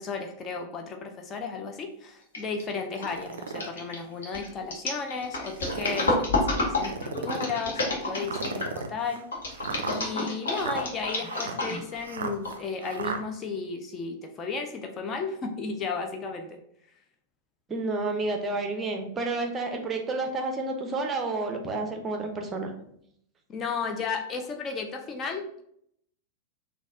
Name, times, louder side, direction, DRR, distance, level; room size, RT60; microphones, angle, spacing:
voice 1, 0.0-9.7 9.9-16.6 23.5-25.6, left 4 dB, 25° left, 3 dB, 0.5 m, -34 dB
sound 1, 2.3-2.6 2.9-8.8 9.3-12.0 12.4-12.5, left 2 dB, 65° left, 1.0 m, -29 dB
sound 2, 3.0-3.7 4.3-4.4 5.4-6.1 6.8-7.6 8.2-13.2, right 4 dB, 65° right, 0.4 m, -36 dB
voice 2, 17.7-22.7, right 3 dB, 20° right, 4 dB, 0.6 m, -30 dB
4.1 x 2.3 x 3.5 m, 0.70 s
figure-of-eight pair, 90°, 0 cm